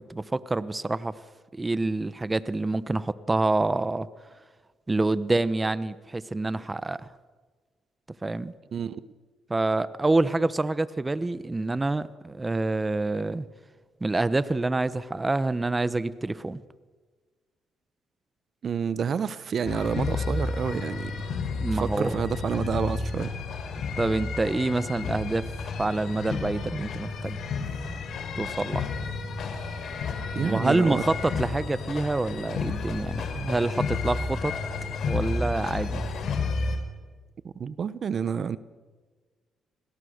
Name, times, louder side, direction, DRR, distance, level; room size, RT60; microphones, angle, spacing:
voice 1, 0.1-1.1 1.5-4.1 4.9-7.1 8.2-8.5 9.5-13.5 14.0-16.6 21.6-22.2 24.0-25.5 25.8-27.4 28.3-28.9 30.4-34.5 35.1-36.0, right 2 dB, 20° right, 15 dB, 1.0 m, -27 dB
voice 2, 8.7-9.0 18.6-21.1 21.7-23.3 30.3-31.0 37.5-38.6, right 7 dB, 50° right, 16 dB, 0.9 m, -29 dB
sound 1, 19.7-36.8, left 4 dB, 65° left, 4.3 m, -31 dB
30.0 x 21.5 x 6.6 m, 1.4 s
cardioid pair, 90°, 0 cm